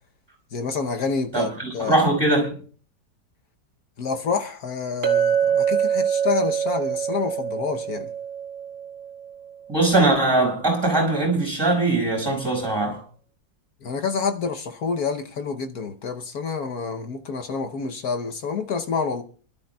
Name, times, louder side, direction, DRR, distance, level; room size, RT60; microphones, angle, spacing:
voice 1, 0.5-2.0 4.0-8.1 13.8-19.2, left 5 dB, 60° left, 1.3 m, -28 dB
voice 2, 1.3-2.6 9.7-13.0, right 2 dB, 10° right, 5.5 m, -21 dB
Chink clink, 5.0-9.5, right 8 dB, 50° right, 2.3 m, -24 dB
28.0 x 12.5 x 2.3 m
omnidirectional pair, 2.0 m